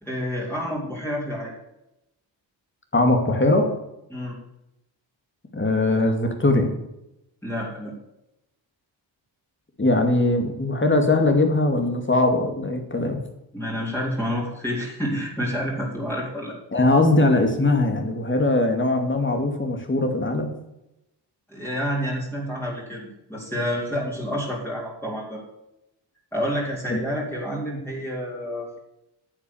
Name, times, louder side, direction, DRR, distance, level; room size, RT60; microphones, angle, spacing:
voice 1, 0.0-1.5 4.1-4.4 7.4-7.9 13.5-16.6 21.5-25.4 26.3-28.8, equal, 5° left, -5 dB, 3.5 m, -29 dB
voice 2, 2.9-3.7 5.5-6.7 9.8-13.2 16.7-20.5 26.9-27.0, left 2 dB, 25° left, 4 dB, 2.4 m, -20 dB
9.7 x 7.1 x 7.2 m, 0.88 s
cardioid pair, 80°, 46 cm